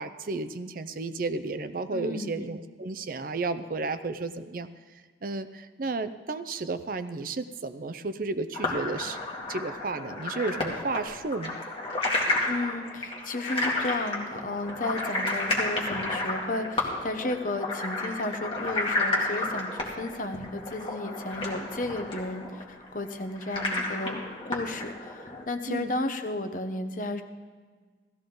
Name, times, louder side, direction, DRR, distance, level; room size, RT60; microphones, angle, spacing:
voice 1, 0.0-4.7 5.2-9.2 9.5-11.6 25.7-26.0, right 3 dB, 50° right, 11 dB, 0.6 m, -32 dB
voice 2, 1.9-2.4 12.4-24.2 24.5-27.2, left 2 dB, 45° left, 6 dB, 0.9 m, -33 dB
sound 1, 8.5-25.4, left 2 dB, 30° left, 2.1 m, -32 dB
16.0 x 14.5 x 3.9 m, 1.5 s
head